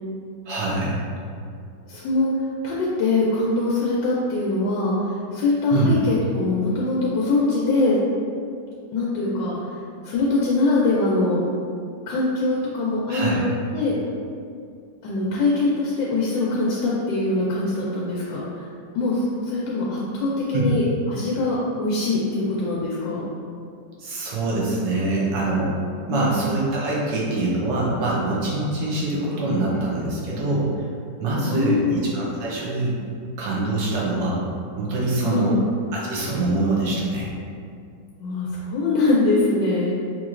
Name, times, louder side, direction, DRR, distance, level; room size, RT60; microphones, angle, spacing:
voice 1, 0.5-1.0 5.7-5.9 13.1-13.4 20.5-20.7 24.0-25.7 26.1-30.9 31.2-33.0 33.4-34.4 34.8-35.6 35.9-37.3, right 2 dB, 90° right, -5 dB, 1.5 m, -24 dB
voice 2, 1.9-2.3 2.6-8.0 8.9-9.8 10.0-11.4 12.1-13.4 13.7-14.0 15.0-18.7 18.9-23.3 26.1-26.4 31.4-32.1 35.2-35.6 38.2-40.0, left 2 dB, 85° left, -5 dB, 1.3 m, -23 dB
4.3 x 2.9 x 2.4 m, 2.3 s
omnidirectional pair, 1.9 m